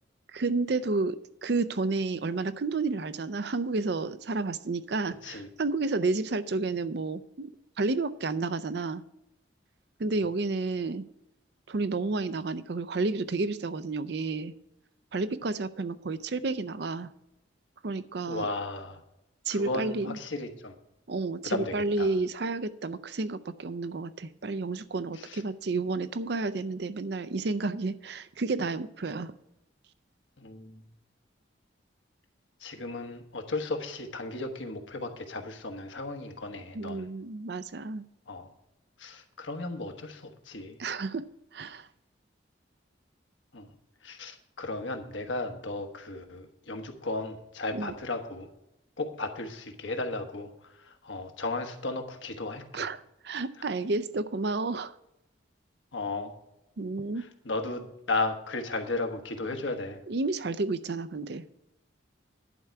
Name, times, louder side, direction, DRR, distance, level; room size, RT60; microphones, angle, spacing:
voice 1, 0.3-7.5 7.8-9.0 10.0-11.0 11.7-14.5 15.1-17.1 17.8-18.4 19.5-20.2 21.1-29.3 36.7-38.1 40.8-41.3 41.5-41.9 47.7-47.9 52.7-54.9 56.8-57.3 60.1-61.5, right 3 dB, 60° right, 14 dB, 0.5 m, -31 dB
voice 2, 18.3-19.0 19.5-20.7 21.4-22.1 25.2-25.4 30.4-30.8 32.6-37.1 38.3-38.5 39.0-40.8 43.5-43.7 44.0-48.5 49.0-52.8 55.9-56.3 57.4-60.0, left 2 dB, 75° left, 5 dB, 1.3 m, -35 dB
11.0 x 4.7 x 7.5 m, 0.86 s
head